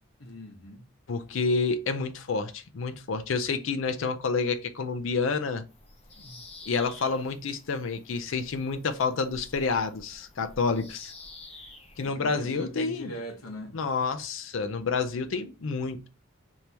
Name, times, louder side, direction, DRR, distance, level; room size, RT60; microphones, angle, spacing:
voice 1, 0.2-0.8 6.2-6.4 12.0-13.8, equal, 90° left, 1.0 m, -41 dB
voice 2, 1.1-5.6 6.7-11.1 12.0-13.1 13.7-16.1, left 4 dB, 70° left, 0.5 m, -29 dB
Bird vocalization bird call bird song, 5.7-12.1, left 2 dB, 30° left, 0.7 m, -49 dB
4.4 x 3.4 x 2.9 m
head